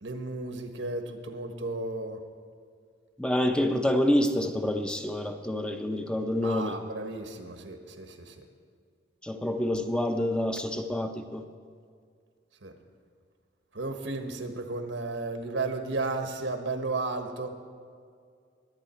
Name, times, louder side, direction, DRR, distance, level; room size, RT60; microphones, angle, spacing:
voice 1, 0.0-2.2 6.4-8.5 12.6-12.7 13.7-17.5, right 3 dB, 90° right, 6 dB, 1.3 m, -34 dB
voice 2, 3.2-6.8 9.2-11.4, left 1 dB, 5° left, 6 dB, 0.5 m, -27 dB
21.5 x 8.7 x 4.4 m, 2.1 s
head